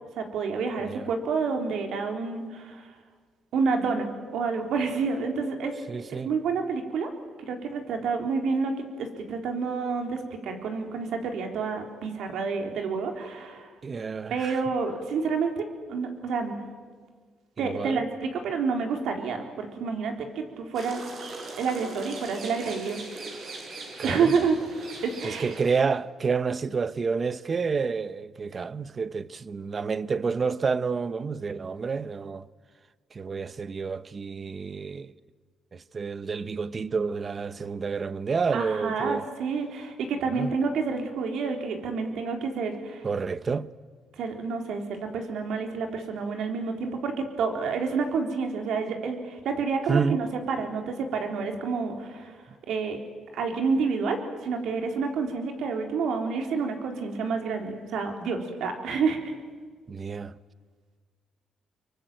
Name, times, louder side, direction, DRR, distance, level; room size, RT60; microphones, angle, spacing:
voice 1, 0.1-2.9 3.5-5.7 6.1-7.1 7.5-8.7 9.0-13.7 14.3-15.6 15.9-16.6 17.6-21.0 21.5-23.0 24.0-24.6 25.0-25.5 38.5-43.1 44.2-52.3 52.6-53.0 53.3-59.2, right 5 dB, 75° right, 3.9 m, -29 dB
voice 2, 5.9-6.3 13.8-14.6 17.6-18.0 24.0-24.3 25.2-32.5 33.1-35.1 35.7-39.2 40.3-40.5 43.0-43.7 49.9-50.2 59.9-60.3, right 5 dB, 40° right, 0.9 m, -29 dB
sound 1, 20.7-25.8, right 3 dB, 60° right, 6.2 m, -40 dB
25.5 x 23.0 x 9.2 m
cardioid pair, 90°, 0 cm